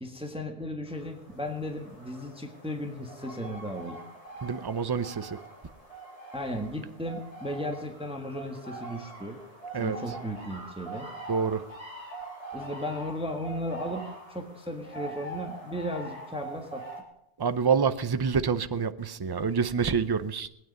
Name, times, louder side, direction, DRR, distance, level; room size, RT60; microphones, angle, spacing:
voice 1, 0.0-4.0 6.3-9.4 9.7-11.1 12.5-16.9, equal, 5° right, 1.3 m, -35 dB
sound 1, 0.9-17.0, right 2 dB, 35° left, 3.5 m, -44 dB
voice 2, 4.4-5.4 9.7-10.0 11.3-11.7 17.4-20.5, right 6 dB, 30° right, 0.6 m, -27 dB
20.0 x 9.4 x 5.3 m
omnidirectional pair, 1.1 m